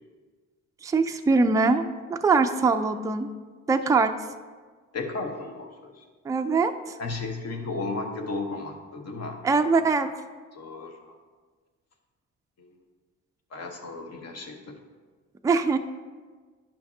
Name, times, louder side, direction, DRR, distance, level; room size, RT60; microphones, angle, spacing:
voice 1, 0.8-1.8 2.1-3.3 3.7-4.1 6.3-7.0 9.4-10.1 15.4-15.8, right 4 dB, 10° right, 7 dB, 0.3 m, -22 dB
voice 2, 4.9-6.0 7.0-9.4 10.5-11.2 12.6-12.7 13.5-14.6, left 3 dB, 55° left, 3 dB, 1.1 m, -34 dB
10.5 x 5.6 x 2.7 m, 1.4 s
cardioid pair, 90°, 30 cm